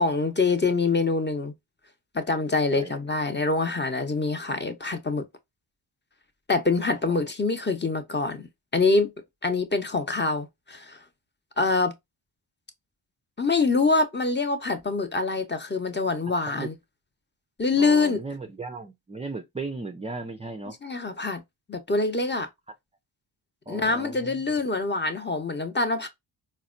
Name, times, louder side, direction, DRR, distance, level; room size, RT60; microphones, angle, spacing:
voice 1, 0.0-1.5 2.1-5.2 6.5-8.5 8.7-9.1 9.4-11.0 11.6-11.9 13.4-16.7 17.6-18.2 20.7-21.4 21.7-22.5 23.7-26.1, left 3 dB, 20° left, 0.7 m, -25 dB
voice 2, 17.8-20.8 23.7-24.3, right 3 dB, 15° right, 0.3 m, -36 dB
4.0 x 2.2 x 2.4 m
cardioid pair, 55°, 49 cm